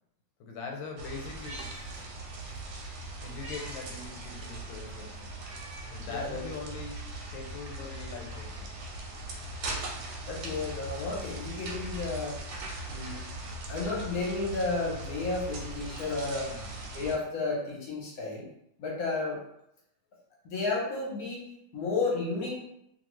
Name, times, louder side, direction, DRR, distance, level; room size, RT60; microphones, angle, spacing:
voice 1, 0.4-1.8 3.2-5.3 5.9-8.8 16.4-16.7, left 4 dB, 90° left, 2 dB, 1.4 m, -42 dB
sound 1, 1.0-17.2, right 2 dB, 85° right, 1.4 m, -40 dB
Meow, 1.3-2.6 2.9-3.8 4.2-4.3 5.3-6.0 6.5-6.6 7.6-8.6 10.1-11.1 12.5-13.3 14.8-16.5 17.7-17.8, right 1 dB, 15° right, 0.5 m, -51 dB
voice 2, 6.1-6.4 10.3-12.4 12.9-13.2 13.7-16.5 16.9-18.5 18.8-19.4 20.4-21.4 21.7-22.5, left 3 dB, 60° left, -4 dB, 1.0 m, -32 dB
2.7 x 2.6 x 3.0 m, 0.79 s
omnidirectional pair, 2.1 m